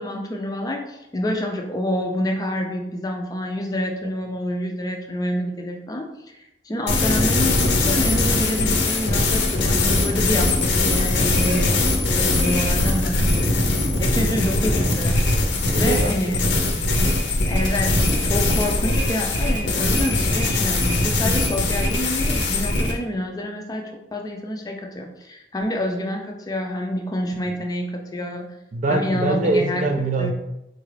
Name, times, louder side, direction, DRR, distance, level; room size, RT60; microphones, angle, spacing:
voice 1, 0.0-15.2 15.8-16.4 17.5-28.5 28.9-29.9 30.2-30.3, left 1 dB, 20° left, 2 dB, 0.4 m, -28 dB
sound 1, 6.9-22.9, left 2 dB, 85° left, 0.6 m, -21 dB
voice 2, 15.7-16.2 16.4-17.3 28.7-30.3, right 2 dB, 45° right, 5 dB, 0.3 m, -24 dB
4.0 x 2.4 x 3.2 m, 0.88 s
head